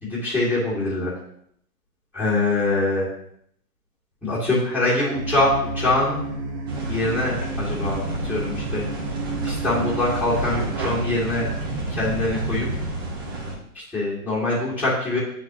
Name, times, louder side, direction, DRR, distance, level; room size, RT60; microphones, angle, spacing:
voice 1, 0.0-1.1 2.1-3.1 4.2-6.2 6.9-8.0 8.3-8.8 9.4-11.5 12.0-12.7 13.9-15.2, left 2 dB, 5° left, -9 dB, 2.0 m, -23 dB
sound 1, 5.1-11.9, right 2 dB, 45° right, 1.3 m, -32 dB
sound 2, 6.7-13.6, right 2 dB, 15° right, 0.4 m, -30 dB
9.5 x 4.2 x 3.0 m, 0.70 s
figure-of-eight pair, 120°, 46 cm